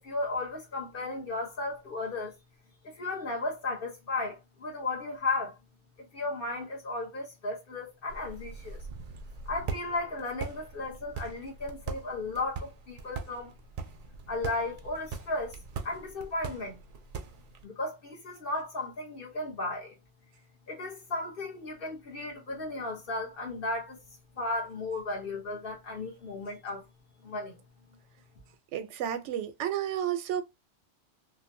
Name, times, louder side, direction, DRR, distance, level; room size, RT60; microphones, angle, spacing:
voice 1, 0.0-2.3 2.8-5.6 6.1-8.8 9.5-13.5 14.3-15.5 15.8-16.8 17.6-19.9 20.7-24.0 24.4-26.8 27.2-27.6, left 2 dB, 55° left, 1.2 m, -35 dB
sound 1, 8.1-17.6, right 5 dB, 55° right, 0.4 m, -41 dB
voice 2, 28.7-30.4, right 10 dB, 90° right, 0.9 m, -31 dB
3.1 x 2.2 x 2.6 m
omnidirectional pair, 1.2 m